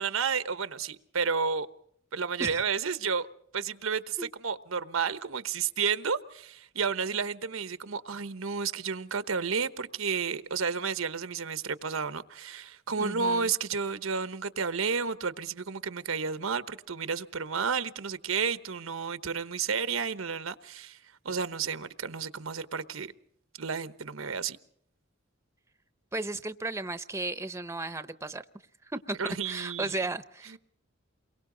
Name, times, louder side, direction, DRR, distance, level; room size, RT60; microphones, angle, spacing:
voice 1, 0.0-1.7 2.1-3.3 3.5-21.0 21.2-23.1 23.6-24.6 29.2-29.9 30.5-30.6, right 5 dB, 90° right, 1.1 m, -31 dB
voice 2, 13.0-13.5 26.1-28.4 28.8-30.6, right 2 dB, 15° right, 0.8 m, -35 dB
29.0 x 23.0 x 3.9 m
head